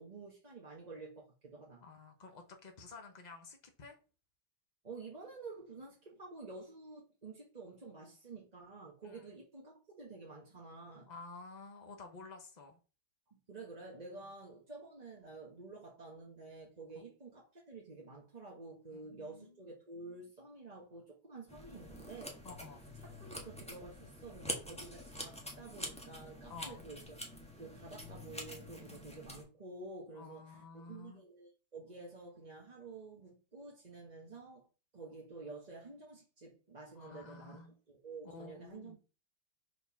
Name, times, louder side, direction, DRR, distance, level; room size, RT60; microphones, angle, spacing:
voice 1, 0.0-1.8 4.8-11.1 13.3-22.4 23.2-27.2 27.6-34.7 34.9-39.0, right 3 dB, 25° right, 1.2 m, -50 dB
voice 2, 1.8-4.0 9.0-9.2 11.0-12.8 16.9-17.0 18.9-19.7 22.4-22.8 26.5-26.9 30.1-31.2 36.9-37.8 38.2-39.0, left 4 dB, 60° left, 0.4 m, -51 dB
sound 1, 21.5-29.4, equal, 5° left, 1.2 m, -46 dB
5.3 x 4.6 x 5.7 m
omnidirectional pair, 2.4 m